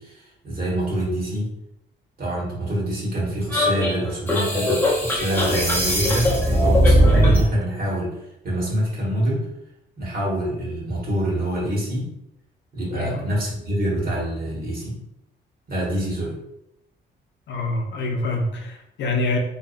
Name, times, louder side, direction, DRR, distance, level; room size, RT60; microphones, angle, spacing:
voice 1, 0.0-1.5 2.2-9.5 10.0-12.1 12.7-15.0 15.7-16.4, equal, 50° right, -4 dB, 1.1 m, -26 dB
sound 1, 3.5-7.5, equal, 10° left, 0.7 m, -19 dB
voice 2, 12.9-13.3 17.5-19.4, left 2 dB, 65° left, 2 dB, 0.6 m, -26 dB
2.6 x 2.2 x 2.4 m, 0.80 s
cardioid pair, 90°, 20 cm